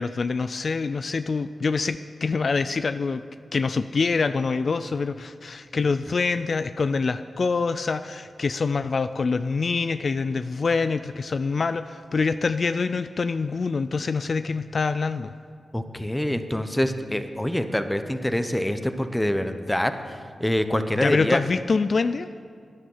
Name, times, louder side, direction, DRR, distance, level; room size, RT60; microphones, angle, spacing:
voice 1, 0.0-3.2 3.5-15.3 21.0-22.3, left 4 dB, 60° left, 12 dB, 0.3 m, -25 dB
voice 2, 15.7-21.4, left 1 dB, 10° left, 9 dB, 0.9 m, -25 dB
12.0 x 10.0 x 5.6 m, 2.1 s
supercardioid pair, 40°, 0 cm